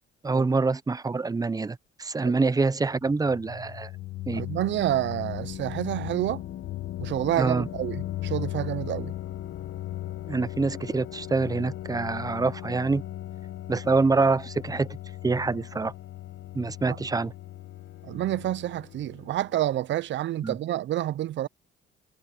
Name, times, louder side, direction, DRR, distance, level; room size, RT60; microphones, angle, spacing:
voice 1, 0.2-3.9 4.3-4.4 7.4-7.7 10.3-13.0 13.7-14.9 15.2-15.9 16.5-17.3 20.4-20.6, right 3 dB, 20° right, 0.6 m, -25 dB
sound 1, 2.9-19.6, left 13 dB, 70° left, 1.1 m, -37 dB
voice 2, 4.3-6.4 7.0-9.1 16.8-17.0 18.0-21.5, right 13 dB, 65° right, 0.6 m, -28 dB
cardioid pair, 90°, 20 cm